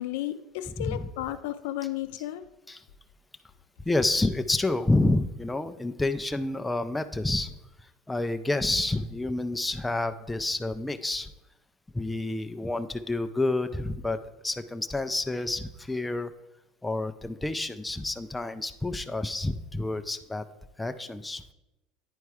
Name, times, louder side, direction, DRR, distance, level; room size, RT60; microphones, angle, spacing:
voice 1, 0.0-2.5, left 14 dB, 80° left, 11 dB, 0.5 m, -33 dB
voice 2, 3.9-7.5 8.1-11.3 11.9-14.2 14.4-16.3 16.8-20.4 20.8-21.4, left 2 dB, 5° left, 8 dB, 0.4 m, -29 dB
9.5 x 4.5 x 4.8 m, 0.95 s
supercardioid pair, 140°, 0 cm